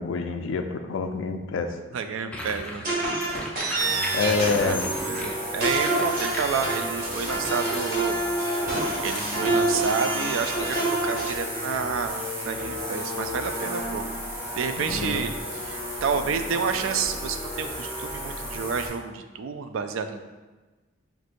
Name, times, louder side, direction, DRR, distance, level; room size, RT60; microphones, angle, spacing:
voice 1, 0.0-1.8 4.1-4.9 14.8-15.2, left 4 dB, 75° left, 6 dB, 0.4 m, -27 dB
voice 2, 1.9-2.8 4.6-4.8 5.0-8.2 9.0-14.0 14.3-20.2, right 5 dB, 80° right, 8 dB, 0.3 m, -30 dB
sound 1, 2.3-9.2, left 1 dB, 5° left, 0.4 m, -38 dB
sound 2, 2.8-5.2 5.6-11.3, right 2 dB, 45° right, 1.4 m, -27 dB
sound 3, 3.8-18.9, equal, 30° right, 1.2 m, -33 dB
5.9 x 2.6 x 2.5 m, 1.2 s
head